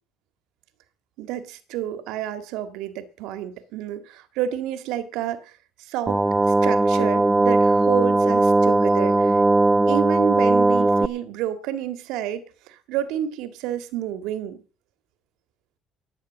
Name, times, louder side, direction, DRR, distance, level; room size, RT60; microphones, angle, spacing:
voice 1, 1.2-6.2 6.5-9.4 9.9-14.6, right 11 dB, 80° right, 1.9 m, -30 dB
sound 1, 6.1-11.1, right 2 dB, 15° right, 0.6 m, -18 dB
13.0 x 8.6 x 7.3 m
cardioid pair, 105°, 0 cm